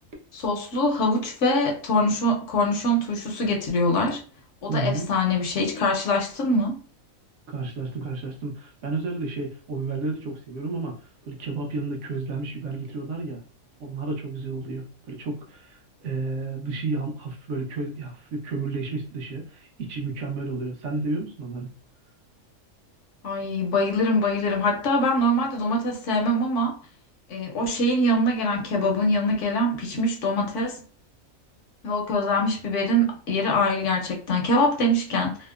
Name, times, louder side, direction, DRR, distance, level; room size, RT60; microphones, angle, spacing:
voice 1, 0.3-4.2 4.6-6.8 23.2-26.8 27.3-30.8 31.8-35.4, left 1 dB, 70° left, 0.9 m, -23 dB
voice 2, 4.7-5.1 7.5-13.4 13.8-21.7, right 3 dB, 65° right, 0.9 m, -31 dB
2.7 x 2.0 x 2.2 m
omnidirectional pair, 1.4 m